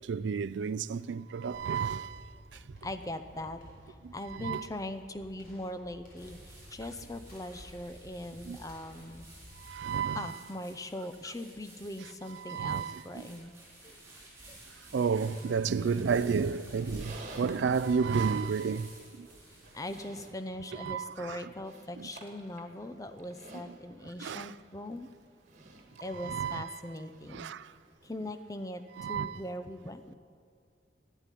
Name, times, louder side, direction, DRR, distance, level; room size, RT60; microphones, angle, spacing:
voice 1, 0.1-2.2 4.4-4.7 8.5-8.6 9.7-10.4 12.5-13.0 14.9-17.1 17.4-18.9 20.7-21.4 24.2-24.5 26.2-26.8 27.3-27.6 29.0-29.4, right 6 dB, 70° right, 0.4 m, -31 dB
sound 1, 1.5-10.7, equal, 50° left, 3.9 m, -54 dB
voice 2, 2.5-9.3 10.1-13.6 13.8-14.0 14.5-14.6 19.5-25.1 26.0-27.5 28.0-30.2, left 1 dB, 20° left, 0.6 m, -41 dB
sound 2, 6.2-20.0, right 1 dB, 10° right, 4.3 m, -52 dB
Livestock farm animals working animals, 16.6-27.9, right 2 dB, 40° right, 1.7 m, -54 dB
11.5 x 9.2 x 10.0 m
head